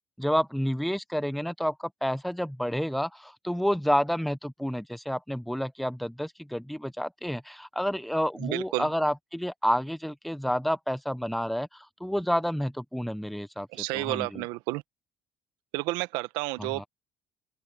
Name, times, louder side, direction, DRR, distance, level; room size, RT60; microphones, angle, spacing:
voice 1, 0.2-13.7 13.9-14.4 16.6-16.9, equal, ahead, 1.2 m, -29 dB
voice 2, 8.4-8.9 13.7-14.8 15.7-16.9, right 22 dB, 80° right, 1.2 m, -31 dB
open air
hypercardioid pair, 65°, 7 cm